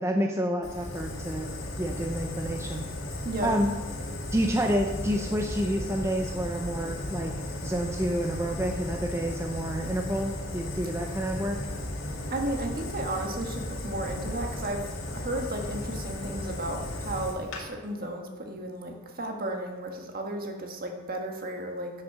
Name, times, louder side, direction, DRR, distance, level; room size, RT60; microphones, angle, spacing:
voice 1, 0.0-1.5 1.8-2.9 3.4-3.7 4.3-7.4 7.6-11.6, equal, 15° right, 2 dB, 0.7 m, -29 dB
Fire, 0.6-17.6, left 1 dB, 90° left, 2.2 m, -35 dB
voice 2, 3.2-3.6 12.3-14.8 15.1-21.9, right 1 dB, 45° right, 2 dB, 1.7 m, -34 dB
11.0 x 6.5 x 6.8 m, 1.3 s
head